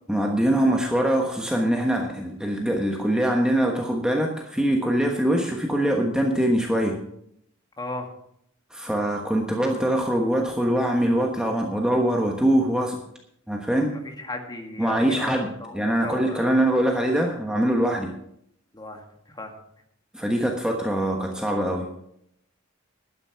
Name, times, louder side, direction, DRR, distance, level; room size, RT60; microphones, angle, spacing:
voice 1, 0.1-7.0 8.7-13.0 13.5-13.9 14.8-18.1 20.1-21.9, right 1 dB, 5° right, 1 dB, 1.2 m, -23 dB
voice 2, 7.8-8.1 13.9-16.5 18.7-19.5, left 2 dB, 20° left, 3 dB, 1.9 m, -36 dB
12.0 x 9.8 x 5.7 m, 0.74 s
head